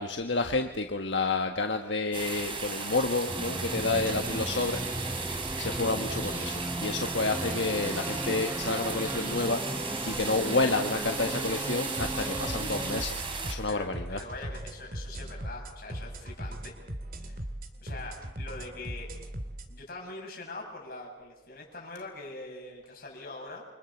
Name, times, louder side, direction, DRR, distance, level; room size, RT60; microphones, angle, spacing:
voice 1, 0.0-4.8 5.1-14.2, left 3 dB, 85° left, 4 dB, 1.5 m, -30 dB
sound 1, 2.1-13.6, right 4 dB, 30° right, 3.4 m, -36 dB
sound 2, 3.3-13.0, right 1 dB, 15° right, 0.8 m, -36 dB
sound 3, 12.0-19.7, right 1 dB, 50° right, 2.4 m, -39 dB
voice 2, 13.7-16.8 17.2-17.4 17.7-19.1 19.7-23.6, left 2 dB, 55° left, 0 dB, 7.8 m, -43 dB
29.5 x 25.0 x 7.3 m, 1.1 s
head